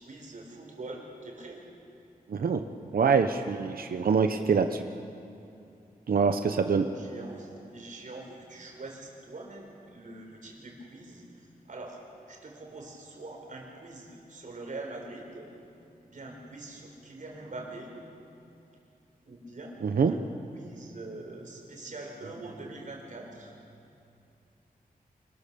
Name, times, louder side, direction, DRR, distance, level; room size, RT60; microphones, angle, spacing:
voice 1, 0.0-1.6 6.6-12.0 12.3-15.5 16.0-17.9 19.2-19.8 20.1-20.2 20.5-23.6, right 2 dB, 55° right, 1 dB, 4.4 m, -43 dB
voice 2, 2.3-2.6 2.9-4.8 6.1-6.8 19.8-20.1, right 5 dB, 75° right, 7 dB, 0.9 m, -25 dB
26.5 x 18.5 x 6.9 m, 2.7 s
wide cardioid pair, 130°, 15 cm